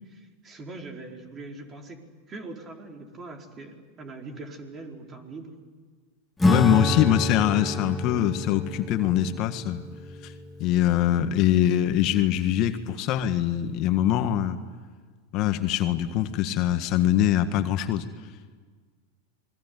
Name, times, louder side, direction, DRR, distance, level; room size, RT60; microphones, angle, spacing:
voice 1, 0.0-5.6, right 2 dB, 30° right, 3 dB, 4.6 m, -42 dB
Acoustic guitar / Strum, 6.4-12.3, left 1 dB, 10° left, 3.0 m, -29 dB
voice 2, 6.5-9.8 10.2-10.3 10.6-14.6 15.3-18.1, left 11 dB, 50° left, 9 dB, 1.6 m, -23 dB
28.0 x 21.5 x 9.6 m, 1.5 s
hypercardioid pair, 100°, 0 cm